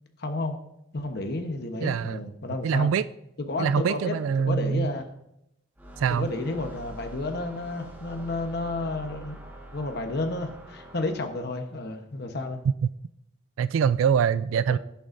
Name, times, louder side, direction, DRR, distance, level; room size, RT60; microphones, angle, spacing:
voice 1, 0.2-0.6 0.9-2.9 3.4-4.1 4.5-5.0 6.1-9.4 9.7-12.6 14.7-14.8, left 2 dB, 55° left, 1.0 m, -31 dB
voice 2, 1.8-2.2 2.6-3.0 3.6-4.9 6.0-6.3 13.6-14.8, right 7 dB, 90° right, 0.3 m, -24 dB
sound 1, 5.8-11.5, right 1 dB, 10° right, 1.5 m, -44 dB
16.5 x 6.9 x 2.6 m
head